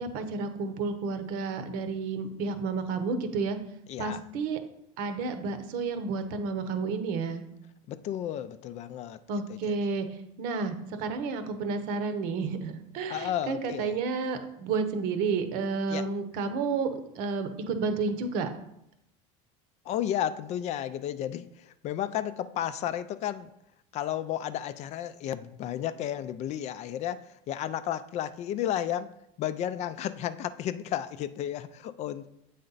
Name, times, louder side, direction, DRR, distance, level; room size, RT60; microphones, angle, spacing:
voice 1, 0.0-3.6 4.0-4.6 5.0-7.4 9.3-18.5, right 4 dB, 65° right, 8 dB, 0.9 m, -31 dB
voice 2, 3.9-4.2 7.9-9.2 9.5-9.8 13.1-13.9 15.9-16.1 19.9-23.5 23.9-29.1 29.4-32.3, left 11 dB, 45° left, 13 dB, 0.4 m, -33 dB
7.7 x 4.2 x 4.0 m, 0.80 s
supercardioid pair, 115°, 16 cm